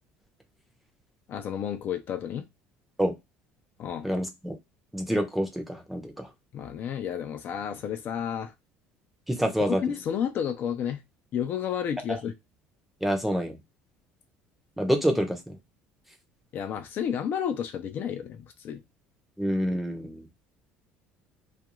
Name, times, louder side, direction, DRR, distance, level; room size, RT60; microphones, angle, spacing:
voice 1, 1.3-2.5 3.8-4.1 6.5-8.5 9.6-11.0 11.3-12.3 16.5-18.8, left 8 dB, 45° left, 0.4 m, -31 dB
voice 2, 4.0-4.6 4.9-6.3 9.3-9.8 13.0-13.6 14.8-15.6 19.4-20.3, equal, 5° right, 0.6 m, -27 dB
2.4 x 2.2 x 2.9 m
cardioid pair, 125°, 5 cm